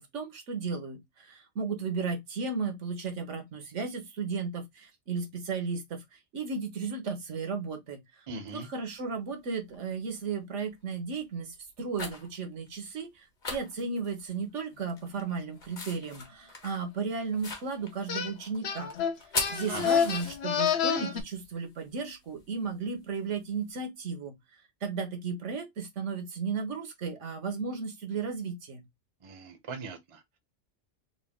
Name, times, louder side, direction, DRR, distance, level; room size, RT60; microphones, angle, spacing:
voice 1, 0.0-8.2 8.5-18.9 19.5-24.3 24.8-28.8, right 5 dB, 80° right, 1.3 m, -35 dB
voice 2, 8.3-8.7 19.7-20.1 29.2-30.4, right 4 dB, 35° right, 0.7 m, -40 dB
sound 1, 8.8-8.9 9.7-10.0 10.5-10.8 11.6-12.4 12.7-12.8 13.0-13.1 13.4-14.5 14.8-20.8 21.1-23.6, left 3 dB, 40° left, 1.2 m, -40 dB
sound 2, 18.1-18.3 18.6-21.2, left 8 dB, 65° left, 0.9 m, -28 dB
4.0 x 2.3 x 3.4 m
omnidirectional pair, 1.2 m